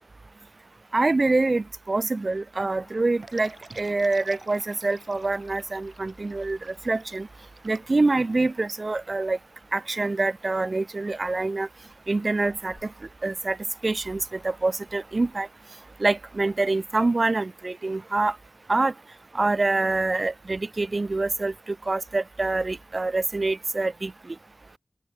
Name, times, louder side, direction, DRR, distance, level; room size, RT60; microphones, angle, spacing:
voice 1, 0.9-7.3 7.6-9.4 9.7-11.7 12.1-12.9 13.2-13.6 13.8-15.5 16.0-18.4 18.7-18.9 19.3-24.4, right 3 dB, 55° right, 0.5 m, -25 dB
sound 1, 2.8-11.1 11.8-12.9 13.9-15.4, left 4 dB, 85° left, 4.2 m, -59 dB
sound 2, 3.2-8.5, right 3 dB, 75° right, 2.5 m, -49 dB
open air
wide cardioid pair, 65°, 0 cm